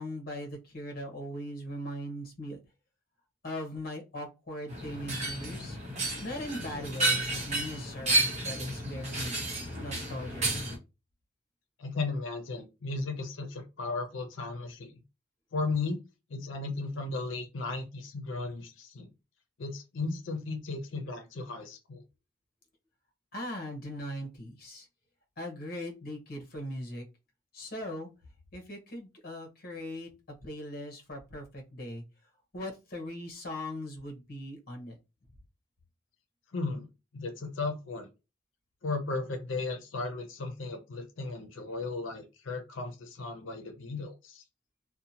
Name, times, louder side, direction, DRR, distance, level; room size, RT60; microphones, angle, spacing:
voice 1, 0.0-2.6 3.4-5.8 6.2-9.5 9.8-10.4 23.3-24.9 25.4-27.1 27.5-28.1 28.5-30.1 30.4-32.0 32.5-35.0, left 1 dB, 50° left, 3 dB, 0.9 m, -39 dB
sound 1, 4.7-10.8, right 2 dB, 35° right, 0.8 m, -31 dB
voice 2, 11.8-15.0 15.5-16.0 16.3-19.1 19.6-22.0 36.5-36.9 37.1-38.1 38.8-44.4, left 3 dB, 80° left, 4 dB, 0.6 m, -35 dB
2.7 x 2.2 x 2.7 m, 0.27 s
head